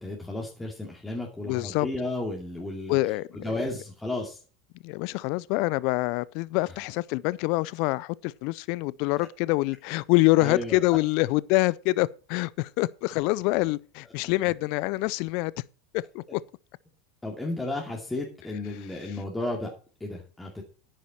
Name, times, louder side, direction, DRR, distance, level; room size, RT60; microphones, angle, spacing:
voice 1, 0.0-4.4 10.4-10.8 14.4-14.5 17.2-19.7 20.0-20.6, left 2 dB, 10° left, 2.6 m, -33 dB
voice 2, 1.4-1.9 2.9-3.5 4.8-15.5 15.9-16.4, left 21 dB, 55° left, 0.4 m, -26 dB
10.5 x 9.1 x 4.4 m
hypercardioid pair, 85°, 0 cm